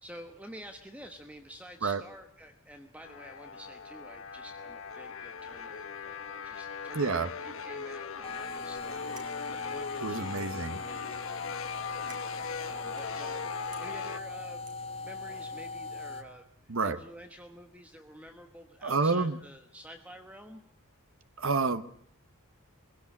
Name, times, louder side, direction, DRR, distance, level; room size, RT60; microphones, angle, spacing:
voice 1, 0.0-11.2 12.6-13.5 13.8-14.6 15.0-20.6, equal, 5° right, 5 dB, 1.2 m, -49 dB
sound 1, 3.0-14.2, left 6 dB, 65° left, 1.2 m, -40 dB
voice 2, 6.9-7.3 10.0-10.8 16.7-17.0 18.8-19.4 21.4-21.8, right 4 dB, 65° right, 11 dB, 1.0 m, -28 dB
sound 2, 8.2-16.2, left 3 dB, 25° left, 2.0 m, -39 dB
sound 3, 9.0-10.1 10.7-11.1 11.4-11.6 11.8-13.3 13.7-13.8 14.7-15.0, right 6 dB, 90° right, 5.1 m, -55 dB
23.5 x 17.0 x 8.7 m, 0.66 s
head